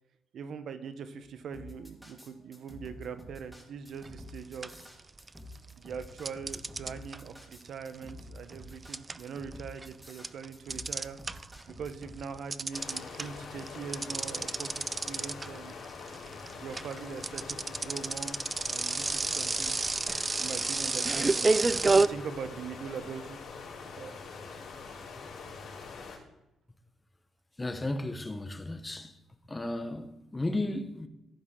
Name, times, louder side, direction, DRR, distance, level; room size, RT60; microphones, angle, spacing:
voice 1, 0.3-4.8 5.8-11.2 11.8-14.7 15.1-15.7 16.6-18.4 18.7-19.8 20.4-23.4 24.0-24.1, right 6 dB, 65° right, 0.8 m, -42 dB
sound 1, 1.5-12.2, left 1 dB, 5° right, 1.9 m, -49 dB
sound 2, 4.0-4.3 4.6-5.6 6.3-11.6 11.9-22.1, right 3 dB, 25° right, 0.3 m, -30 dB
sound 3, 12.7-26.2, left 4 dB, 75° left, 3.5 m, -44 dB
voice 2, 27.6-29.2 29.5-31.1, left 2 dB, 15° left, 0.8 m, -34 dB
15.0 x 5.0 x 3.7 m
cardioid pair, 90°, 0 cm